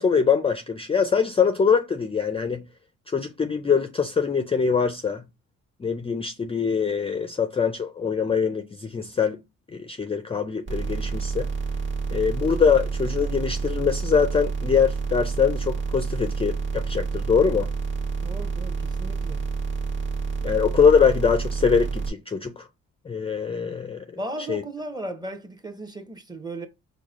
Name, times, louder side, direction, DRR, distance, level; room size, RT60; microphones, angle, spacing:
voice 1, 0.0-2.6 3.1-5.2 5.8-9.4 9.7-11.5 12.1-17.7 20.4-22.7 23.1-24.0 24.5-24.6, left 6 dB, 20° left, 0.4 m, -23 dB
sound 1, 10.7-22.1, right 5 dB, 40° right, 1.2 m, -29 dB
voice 2, 18.2-19.4 24.2-26.7, right 1 dB, 15° right, 0.8 m, -36 dB
4.7 x 2.1 x 3.5 m
cardioid pair, 90°, 30 cm